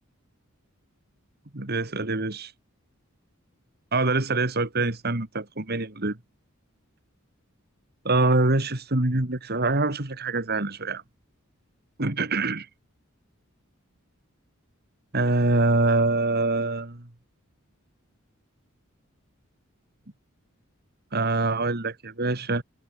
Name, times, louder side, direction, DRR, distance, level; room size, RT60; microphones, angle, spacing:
voice 1, 1.5-2.5 3.9-6.1 8.0-11.0 12.0-12.7 15.1-17.1 21.1-22.6, right 2 dB, 50° right, 2.3 m, -24 dB
head